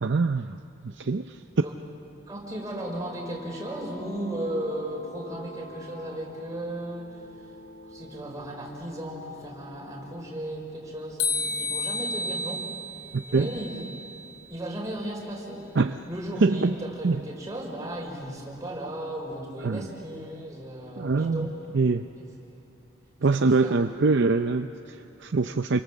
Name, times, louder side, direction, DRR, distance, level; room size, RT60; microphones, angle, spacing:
voice 1, 0.0-1.4 13.1-13.5 15.8-16.0 16.4-16.7 17.0-17.2 19.6-19.9 21.0-21.5 21.7-22.0 23.2-25.8, right 3 dB, 55° right, 8 dB, 0.5 m, -24 dB
voice 2, 2.3-7.2 7.9-12.7 13.3-13.9 14.5-15.6 16.1-21.5 22.2-22.3 23.4-23.8, right 1 dB, 15° right, -3 dB, 5.2 m, -35 dB
sound 1, 2.7-10.3, left 1 dB, 30° left, 1.4 m, -47 dB
sound 2, 11.2-14.3, left 2 dB, 85° left, 3.3 m, -31 dB
29.0 x 24.0 x 7.4 m, 2.7 s
head